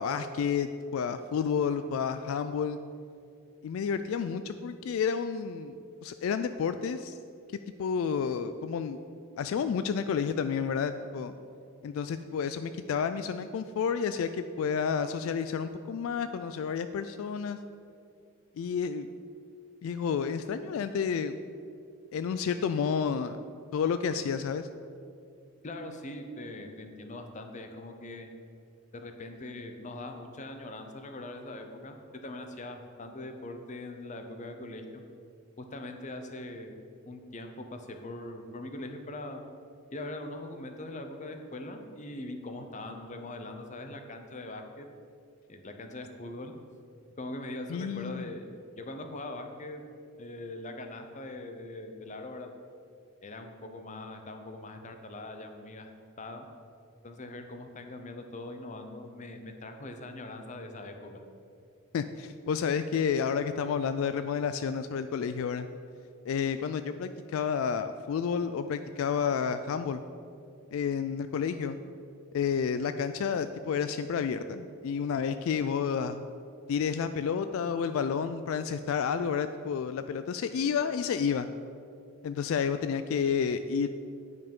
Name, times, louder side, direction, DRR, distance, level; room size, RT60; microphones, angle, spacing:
voice 1, 0.0-2.8 3.6-5.7 6.0-7.1 7.8-9.0 9.4-11.3 11.8-17.6 18.6-19.1 19.8-21.4 22.1-23.4 23.7-24.7 47.7-48.3 61.9-65.7 66.3-70.0 70.7-71.8 72.3-76.3 76.7-81.5 82.2-83.9, left 6 dB, 70° left, 11 dB, 0.3 m, -30 dB
voice 2, 25.6-28.3 28.9-32.0 32.2-35.0 35.6-36.8 37.1-39.4 39.9-44.9 45.5-46.5 47.2-48.5 48.8-49.8 50.2-52.5 53.2-55.9 56.2-56.5 57.0-61.2, left 2 dB, 35° left, 6 dB, 0.7 m, -41 dB
9.3 x 5.4 x 5.3 m, 2.4 s
head